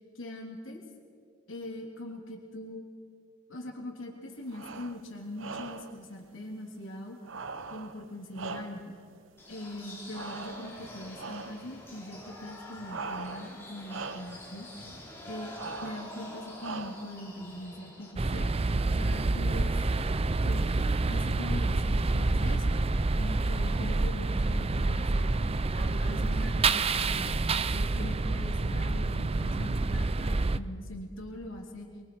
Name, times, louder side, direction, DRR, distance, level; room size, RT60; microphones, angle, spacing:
voice 1, 0.1-0.8 1.5-2.9 3.5-7.2 7.7-9.0 9.5-14.7 15.2-18.6 18.9-19.8 20.4-20.7 21.1-22.8 23.2-25.3 25.7-27.4 27.7-31.9, left 1 dB, 85° left, 0 dB, 3.2 m, -41 dB
sound 1, 4.5-5.0 5.4-6.0 7.2-9.0 10.1-10.9 11.2-11.7 12.9-13.6 13.9-14.4 15.6-16.2 16.6-17.2, right 4 dB, 75° right, 0.9 m, -41 dB
sound 2, 9.4-18.1, left 1 dB, 10° left, 3.5 m, -46 dB
sound 3, 18.2-30.6, right 3 dB, 30° right, 0.5 m, -28 dB
25.5 x 22.5 x 4.7 m, 2.2 s
head